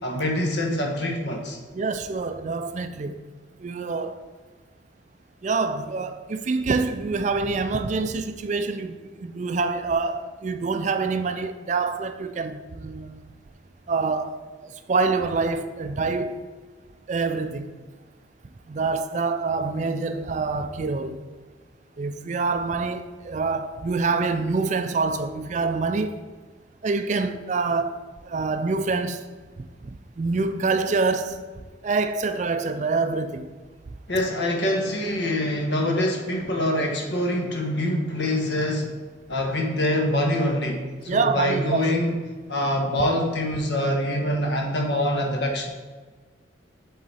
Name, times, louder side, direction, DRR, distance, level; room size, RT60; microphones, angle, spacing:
voice 1, 0.0-1.6 34.1-39.0 39.3-42.2 42.5-45.7, left 1 dB, 65° left, 1.1 m, -25 dB
voice 2, 1.7-3.2 3.6-4.2 5.4-13.2 13.9-16.5 17.1-17.7 18.7-21.2 22.0-26.2 26.8-28.0 28.2-29.3 29.6-31.4 31.8-33.5 41.1-41.9, right 4 dB, 40° right, 0.3 m, -26 dB
7.6 x 3.9 x 4.2 m
head